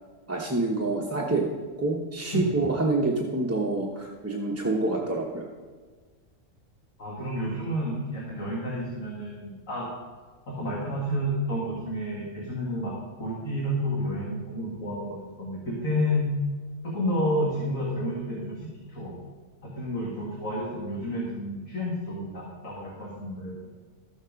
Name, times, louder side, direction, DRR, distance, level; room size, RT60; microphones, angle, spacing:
voice 1, 0.3-5.4, right 2 dB, 15° right, -3 dB, 0.8 m, -27 dB
voice 2, 7.0-9.9 10.5-16.3 16.8-19.1 19.6-23.6, equal, 70° left, -4 dB, 2.3 m, -30 dB
13.5 x 7.2 x 5.2 m, 1.4 s
omnidirectional pair, 1.4 m